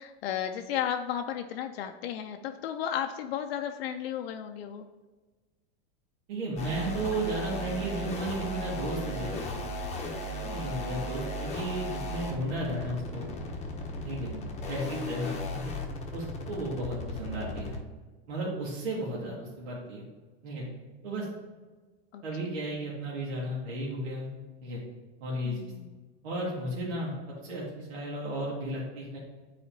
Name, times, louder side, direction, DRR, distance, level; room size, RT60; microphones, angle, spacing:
voice 1, 0.0-4.9 10.4-11.0 14.3-14.6 22.1-22.5 25.4-25.9, left 9 dB, 70° left, 5 dB, 0.6 m, -34 dB
voice 2, 6.3-9.6 10.5-13.3 14.0-14.3 14.7-15.7 16.1-17.8 18.3-20.1 20.4-20.7 21.0-21.3 22.2-24.3 24.6-24.8 25.2-25.6 26.2-29.2, right 1 dB, 75° right, -5 dB, 2.1 m, -34 dB
sound 1, 6.6-17.8, left 1 dB, 20° left, 0.9 m, -36 dB
9.5 x 4.2 x 2.7 m, 1.3 s
supercardioid pair, 130°, 32 cm